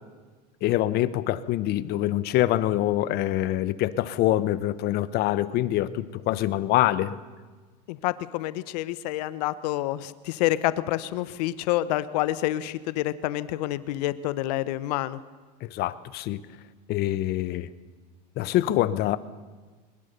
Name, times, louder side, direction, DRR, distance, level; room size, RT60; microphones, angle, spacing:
voice 1, 0.6-7.2 15.6-16.4 16.9-17.7 18.4-19.2, left 14 dB, 50° left, 16 dB, 1.1 m, -25 dB
voice 2, 7.9-15.2, left 15 dB, 70° left, 15 dB, 1.1 m, -28 dB
21.5 x 20.5 x 6.9 m, 1.4 s
supercardioid pair, 120°, 21 cm